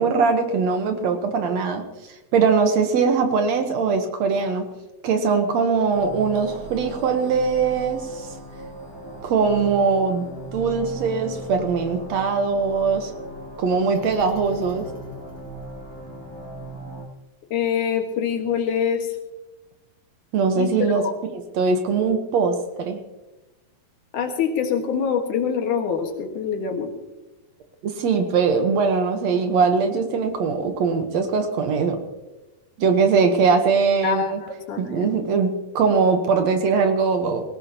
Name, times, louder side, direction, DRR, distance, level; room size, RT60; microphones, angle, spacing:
voice 1, 0.0-1.8 2.3-4.7 5.0-8.3 9.2-10.3 10.5-13.1 13.6-14.9 20.3-21.1 21.3-23.0 27.8-32.0 32.8-34.4 34.8-37.4, right 5 dB, 65° right, 6 dB, 2.2 m, -21 dB
sound 1, 5.9-17.1, right 1 dB, 10° left, 2.7 m, -38 dB
voice 2, 17.5-19.1 20.6-21.1 24.1-26.9 34.0-35.1, left 7 dB, 75° left, 3 dB, 3.1 m, -25 dB
19.0 x 17.5 x 2.9 m, 1.1 s
omnidirectional pair, 3.6 m